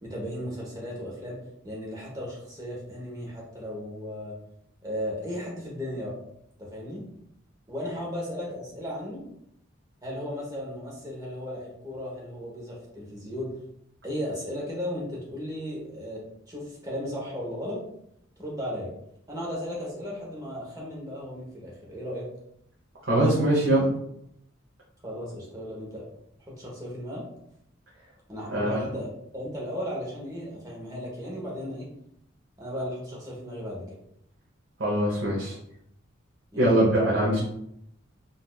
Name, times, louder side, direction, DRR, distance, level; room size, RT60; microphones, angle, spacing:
voice 1, 0.0-4.4 4.8-6.1 6.6-7.1 7.7-9.2 10.0-13.5 14.0-17.8 18.4-18.9 19.3-22.3 25.0-26.0 26.4-27.2 28.3-31.9 32.6-34.0 36.5-36.8, equal, 20° right, -3 dB, 0.9 m, -35 dB
voice 2, 23.0-23.9 28.5-28.8 34.8-35.6 36.5-37.4, right 1 dB, 65° right, -6 dB, 0.9 m, -22 dB
4.1 x 2.6 x 2.3 m, 0.75 s
head